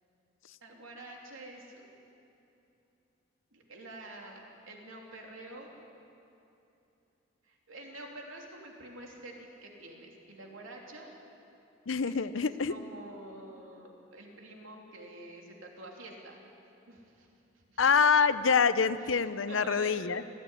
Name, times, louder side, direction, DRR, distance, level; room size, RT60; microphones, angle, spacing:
voice 1, 0.6-1.8 3.5-5.7 7.4-11.1 12.0-16.4 16.9-17.3 17.5-17.8 19.0-20.4, right 2 dB, 90° right, 0 dB, 3.1 m, -47 dB
voice 2, 11.9-12.7 17.8-20.2, left 5 dB, 75° left, 14 dB, 0.7 m, -26 dB
19.0 x 15.5 x 9.9 m, 2.9 s
head